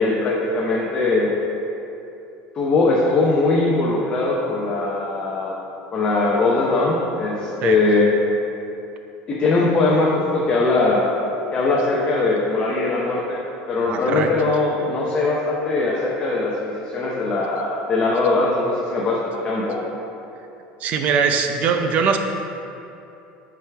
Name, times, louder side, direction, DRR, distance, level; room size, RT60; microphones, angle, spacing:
voice 1, 0.0-1.4 2.5-5.5 5.9-8.1 9.3-11.1 11.5-13.4 13.7-19.8, left 3 dB, 25° left, -4 dB, 0.7 m, -20 dB
voice 2, 13.9-14.3 19.4-19.5 19.8-19.9 20.8-22.2, right 6 dB, 40° right, 6 dB, 0.5 m, -21 dB
8.9 x 4.8 x 3.4 m, 2.8 s
cardioid pair, 165°, 4 cm